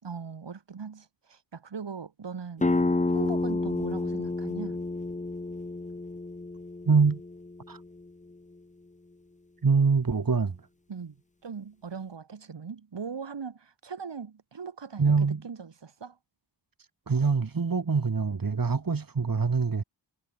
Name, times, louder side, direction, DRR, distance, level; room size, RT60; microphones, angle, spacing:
voice 1, 0.0-2.6 3.1-4.8 10.9-11.2 11.4-16.2, right 6 dB, 65° right, 4.5 m, -40 dB
sound 1, 2.6-8.0, left 2 dB, 15° left, 1.2 m, -30 dB
voice 2, 6.9-7.2 7.7-7.8 9.6-10.6 15.0-15.4 17.1-19.8, right 5 dB, 45° right, 3.7 m, -24 dB
wide cardioid pair, 140°, 46 cm